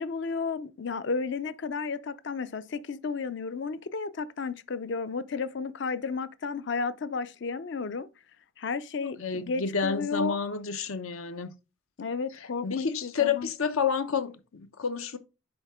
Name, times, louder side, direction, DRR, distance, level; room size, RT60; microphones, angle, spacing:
voice 1, 0.0-8.1 8.6-10.4 12.0-13.5, left 4 dB, 55° left, 0.5 m, -33 dB
voice 2, 9.2-11.5 12.4-15.2, left 6 dB, 80° left, 0.8 m, -30 dB
10.0 x 4.1 x 3.6 m
head